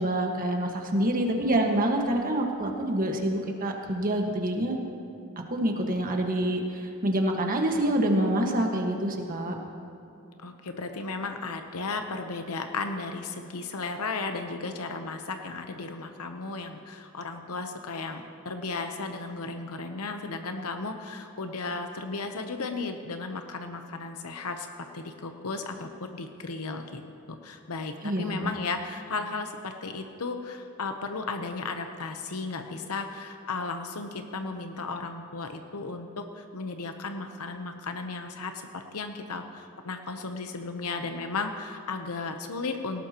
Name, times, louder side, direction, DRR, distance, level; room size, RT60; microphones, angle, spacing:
voice 1, 0.0-4.8 5.3-9.5 28.0-28.5, right 1 dB, 40° right, 2 dB, 1.6 m, -26 dB
voice 2, 10.4-27.0 27.3-43.0, left 3 dB, 75° left, 6 dB, 0.9 m, -35 dB
18.5 x 18.0 x 3.0 m, 2.7 s
head